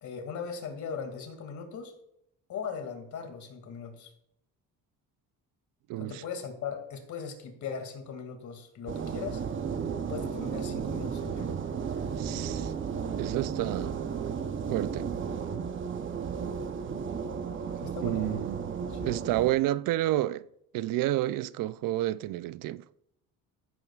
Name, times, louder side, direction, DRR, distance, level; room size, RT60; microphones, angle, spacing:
voice 1, 0.0-1.9 2.5-4.1 6.0-9.4 10.0-11.6 17.8-18.5 18.8-19.2, left 6 dB, 55° left, 2.4 m, -39 dB
voice 2, 5.9-6.2 12.2-12.7 13.2-13.9 14.7-15.1 18.0-18.7 19.1-20.5 20.7-22.8, right 15 dB, 70° right, 0.5 m, -30 dB
sound 1, 8.9-19.5, right 6 dB, 35° right, 0.8 m, -34 dB
15.5 x 8.8 x 2.4 m
cardioid pair, 125°, 35 cm